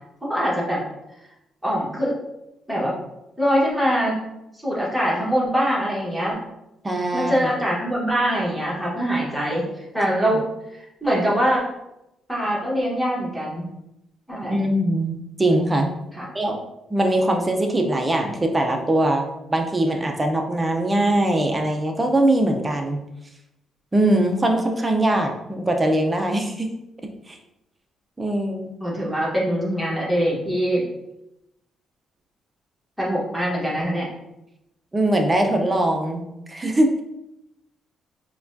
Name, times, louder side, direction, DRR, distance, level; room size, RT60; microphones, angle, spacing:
voice 1, 0.2-0.8 1.6-2.2 2.7-2.9 3.4-4.2 4.6-6.4 7.1-10.4 10.7-11.7 12.3-13.7 14.3-14.6 16.1-16.3 28.8-30.9 33.0-34.1, equal, ahead, -6 dB, 1.4 m, -23 dB
voice 2, 6.8-7.3 14.4-15.9 16.3-16.6 16.9-19.2 19.5-23.0 23.9-26.7 27.3-27.4 28.2-28.7 34.9-37.0, right 1 dB, 20° right, 3 dB, 0.6 m, -21 dB
4.6 x 2.3 x 2.6 m, 0.88 s
cardioid pair, 90°, 0 cm